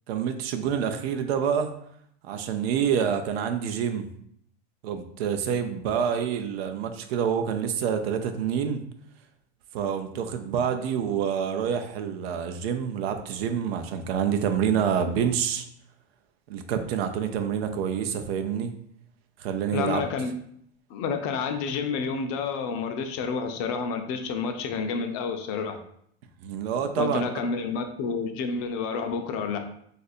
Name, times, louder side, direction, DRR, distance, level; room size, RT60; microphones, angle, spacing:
voice 1, 0.1-1.7 2.2-4.1 4.8-8.8 9.7-15.7 16.5-18.7 19.4-20.0 26.4-27.2, right 7 dB, 75° right, 7 dB, 0.6 m, -27 dB
voice 2, 19.7-20.3 20.9-25.8 27.0-29.6, left 5 dB, 50° left, 6 dB, 0.6 m, -29 dB
2.6 x 2.5 x 4.1 m, 0.68 s
supercardioid pair, 130°, 31 cm